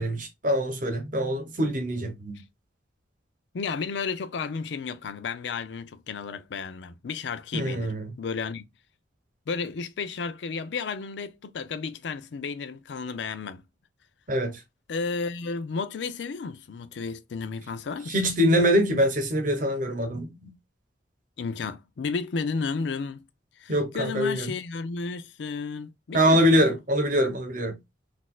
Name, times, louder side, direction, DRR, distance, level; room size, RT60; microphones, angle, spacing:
voice 1, 0.0-2.3 7.5-8.1 14.3-14.6 18.1-20.5 23.7-24.5 26.1-27.8, equal, 45° right, 1.0 m, -24 dB
voice 2, 3.5-8.6 9.5-13.6 14.9-18.2 21.4-23.2 23.6-26.7, left 5 dB, 70° left, 0.4 m, -33 dB
4.0 x 2.5 x 2.3 m
head